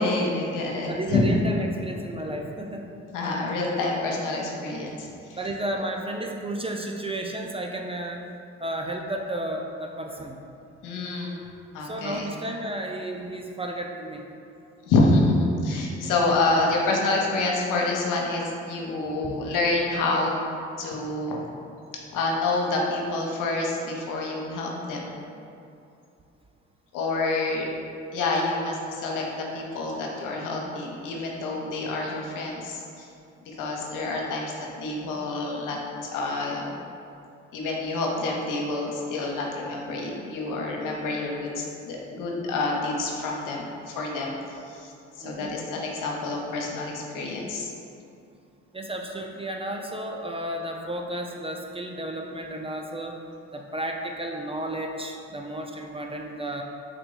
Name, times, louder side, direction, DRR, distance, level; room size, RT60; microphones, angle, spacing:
voice 1, 0.0-1.2 3.1-5.4 10.8-11.3 11.7-12.3 14.9-20.4 20.8-21.4 22.1-25.1 26.9-27.7 28.1-33.1 33.5-36.7 37.5-44.9 45.2-47.7, left 2 dB, 70° left, -1 dB, 0.8 m, -27 dB
voice 2, 0.9-2.9 5.4-8.2 8.6-10.4 11.8-14.2 16.0-16.4 19.2-19.4 45.2-45.6 48.7-53.2 53.5-56.6, right 1 dB, 20° right, 1 dB, 0.3 m, -32 dB
3.3 x 2.9 x 3.8 m, 2.6 s
hypercardioid pair, 55°, 32 cm